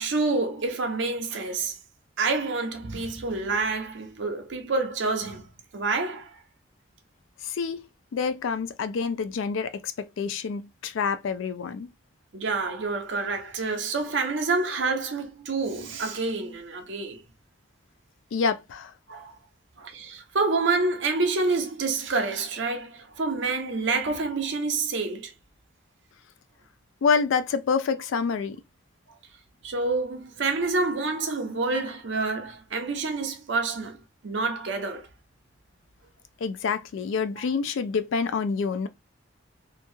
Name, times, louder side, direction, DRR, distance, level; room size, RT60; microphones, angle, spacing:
voice 1, 0.0-1.7 2.2-5.5 5.7-6.4 12.3-17.2 19.1-19.3 19.8-25.3 29.6-34.0 34.2-35.1, right 3 dB, 65° right, 0.7 m, -28 dB
voice 2, 7.4-7.8 8.1-11.9 18.3-18.9 27.0-28.6 36.4-38.9, left 5 dB, 75° left, 0.3 m, -27 dB
2.9 x 2.3 x 2.6 m
head